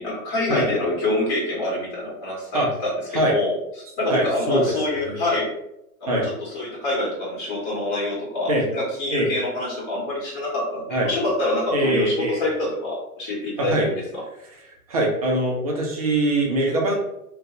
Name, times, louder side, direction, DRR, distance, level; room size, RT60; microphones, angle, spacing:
voice 1, 0.0-3.6 4.0-5.5 6.0-14.2, left 2 dB, 30° left, -3 dB, 1.4 m, -26 dB
voice 2, 4.1-4.7 5.1-5.2 6.1-6.3 8.5-8.6 9.1-9.3 10.9-11.1 11.7-12.4 13.6-13.9 14.9-17.0, right 1 dB, 25° right, 0 dB, 0.4 m, -22 dB
2.5 x 2.3 x 3.6 m, 0.83 s
hypercardioid pair, 140°, 45 cm